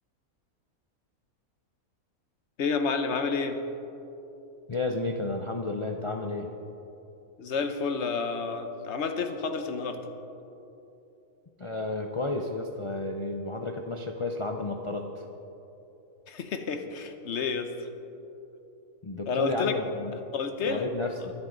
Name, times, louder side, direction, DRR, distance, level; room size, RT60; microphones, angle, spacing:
voice 1, 2.6-3.6 7.4-10.0 16.3-17.9 19.3-19.8 20.3-20.9 21.2-21.3, left 5 dB, 55° left, 7 dB, 1.1 m, -30 dB
voice 2, 4.7-6.5 11.6-15.1 19.0-20.1 20.6-21.3, left 2 dB, 40° left, 3 dB, 0.4 m, -32 dB
24.5 x 8.1 x 4.0 m, 3.0 s
omnidirectional pair, 1.5 m